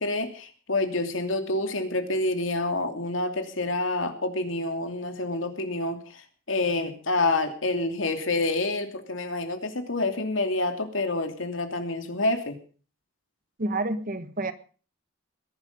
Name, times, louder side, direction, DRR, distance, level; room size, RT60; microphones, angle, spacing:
voice 1, 0.0-12.6, left 2 dB, 75° left, 6 dB, 2.9 m, -28 dB
voice 2, 13.6-14.5, right 2 dB, 45° right, 11 dB, 1.5 m, -29 dB
21.0 x 11.5 x 5.4 m, 0.40 s
head